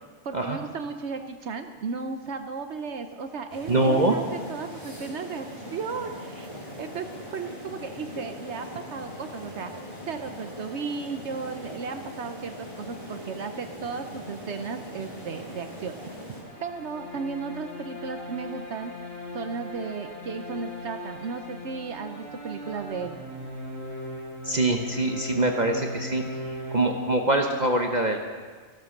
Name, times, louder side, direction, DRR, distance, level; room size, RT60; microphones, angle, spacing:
voice 1, 0.2-6.5 6.8-9.7 10.1-16.0 16.6-18.9 19.3-23.2, right 5 dB, 70° right, 7 dB, 1.1 m, -35 dB
sound 1, 3.5-16.4, left 1 dB, 25° left, 3.6 m, -41 dB
voice 2, 3.7-4.1 24.4-26.2 26.7-28.2, right 2 dB, 40° right, 2 dB, 1.0 m, -24 dB
sound 2, 16.4-27.5, left 1 dB, 65° left, 6.6 m, -38 dB
14.5 x 12.5 x 6.5 m, 1.5 s
omnidirectional pair, 1.2 m